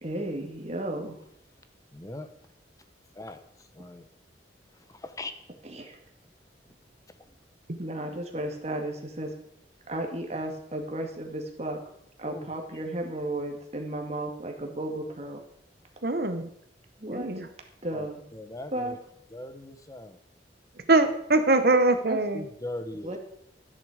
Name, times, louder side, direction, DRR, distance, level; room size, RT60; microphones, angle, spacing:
voice 1, 0.0-1.2 5.7-6.0 7.8-9.3 9.9-11.8 12.2-15.4 17.0-17.3 17.8-18.2 18.7-19.0 22.0-22.2 23.0-23.2, right 1 dB, 35° right, 3 dB, 2.0 m, -34 dB
voice 2, 1.9-2.3 3.2-3.4 3.7-4.1 4.9-5.3 12.2-12.5 17.9-19.0 19.3-20.2 22.3-23.2, left 1 dB, 20° left, 9 dB, 0.9 m, -39 dB
voice 3, 16.0-16.5 17.1-17.5 20.9-22.5, right 2 dB, 55° right, 9 dB, 1.2 m, -23 dB
12.5 x 10.0 x 5.0 m, 0.74 s
head